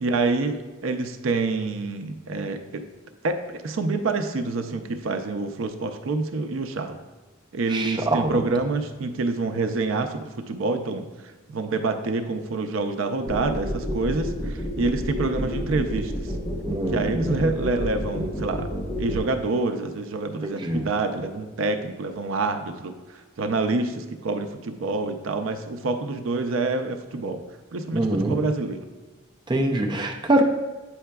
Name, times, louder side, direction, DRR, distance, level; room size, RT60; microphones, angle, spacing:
voice 1, 0.0-2.8 3.2-7.0 7.5-11.0 11.5-16.3 16.9-18.7 19.0-27.4 27.7-28.8, right 3 dB, 75° right, 7 dB, 0.5 m, -27 dB
voice 2, 7.7-8.4 16.7-17.5 20.4-20.9 27.9-28.4 29.5-30.4, right 1 dB, 20° right, 2 dB, 0.5 m, -24 dB
sound 1, 13.3-19.2, equal, 20° left, 1.0 m, -29 dB
8.4 x 5.6 x 2.3 m, 1.2 s
head